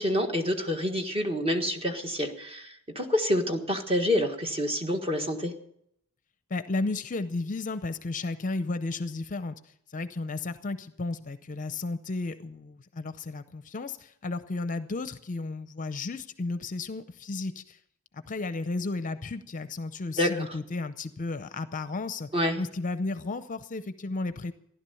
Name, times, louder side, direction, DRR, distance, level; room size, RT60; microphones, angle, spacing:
voice 1, 0.0-5.5 20.2-20.4 22.3-22.6, left 1 dB, 25° right, 4 dB, 1.6 m, -27 dB
voice 2, 6.5-9.6 9.9-17.8 18.1-22.3 22.6-24.5, left 3 dB, 35° left, 12 dB, 0.6 m, -33 dB
15.5 x 11.5 x 7.0 m, 0.72 s
head